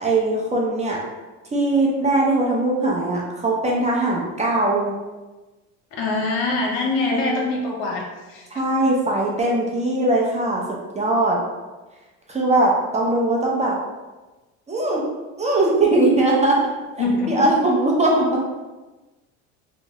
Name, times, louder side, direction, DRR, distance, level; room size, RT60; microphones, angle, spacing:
voice 1, 0.0-1.0 1.5-4.9 7.1-7.3 8.5-11.4 12.3-13.7 14.7-15.0 15.4-16.6 17.3-18.5, right 2 dB, 20° right, -3 dB, 0.5 m, -20 dB
voice 2, 6.0-8.5 17.0-17.5, left 3 dB, 70° left, -1 dB, 0.8 m, -24 dB
2.9 x 2.1 x 2.8 m, 1.2 s
supercardioid pair, 95°, 36 cm